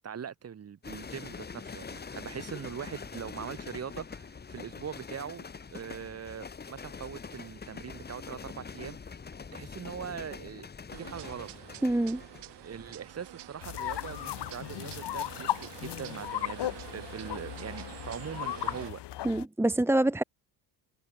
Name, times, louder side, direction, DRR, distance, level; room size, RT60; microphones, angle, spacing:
voice 1, 0.0-9.0 9.5-10.7 11.0-11.5 12.6-19.0, right 7 dB, 35° right, 7.5 m, -41 dB
sound 1, 0.8-18.1 18.4-18.8, left 5 dB, 25° left, 3.2 m, -45 dB
sound 2, 10.9-18.9, right 14 dB, 90° right, 3.8 m, -47 dB
voice 2, 11.8-12.2 19.2-20.2, right 1 dB, 5° right, 1.3 m, -26 dB
sound 3, 13.6-19.4, left 14 dB, 85° left, 5.9 m, -36 dB
cardioid pair, 180°, 40 cm